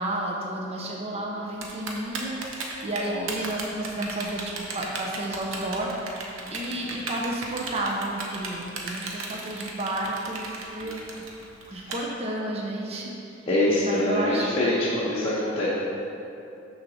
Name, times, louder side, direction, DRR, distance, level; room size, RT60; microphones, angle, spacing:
voice 1, 0.0-6.1 6.5-11.0 11.7-13.1 13.8-14.4 15.2-15.3, right 1 dB, 30° right, -2 dB, 0.7 m, -31 dB
Typing, 1.6-11.9, right 4 dB, 70° right, 0.9 m, -35 dB
voice 2, 2.9-3.3 6.4-6.9 10.8-11.0 11.7-11.9 13.5-15.7, left 1 dB, 30° left, -9 dB, 0.9 m, -26 dB
6.4 x 4.0 x 6.2 m, 2.7 s
head